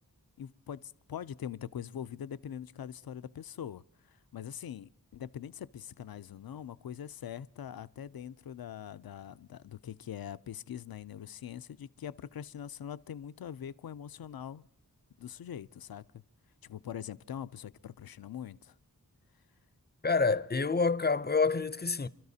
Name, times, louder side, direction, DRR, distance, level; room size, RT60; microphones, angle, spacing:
voice 1, 0.4-14.7 15.2-16.2 16.6-18.7, left 9 dB, 75° left, 0.5 m, -43 dB
voice 2, 20.0-22.1, left 4 dB, 25° left, 0.5 m, -27 dB
29.5 x 12.5 x 2.7 m
wide cardioid pair, 40°, 36 cm